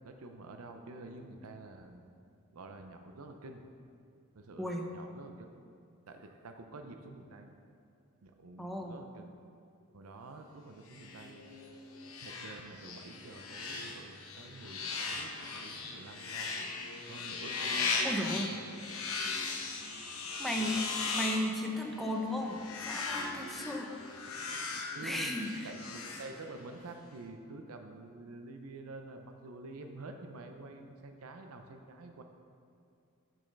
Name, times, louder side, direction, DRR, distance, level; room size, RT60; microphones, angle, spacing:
voice 1, 0.0-2.1 2.5-3.6 4.3-5.5 6.1-7.5 8.2-9.4 9.9-11.5 12.2-16.6 17.0-17.9 18.3-19.1 19.8-20.0 20.6-20.9 22.0-22.1 23.3-23.5 24.9-32.2, right 2 dB, 90° right, 5 dB, 0.6 m, -48 dB
voice 2, 8.6-9.0 18.0-18.5 20.4-20.8 21.1-23.9 24.3-24.6 25.0-25.7, left 1 dB, ahead, 1 dB, 0.6 m, -35 dB
sound 1, 10.9-26.8, left 4 dB, 75° left, 0.9 m, -38 dB
7.1 x 5.5 x 5.2 m, 2.5 s
head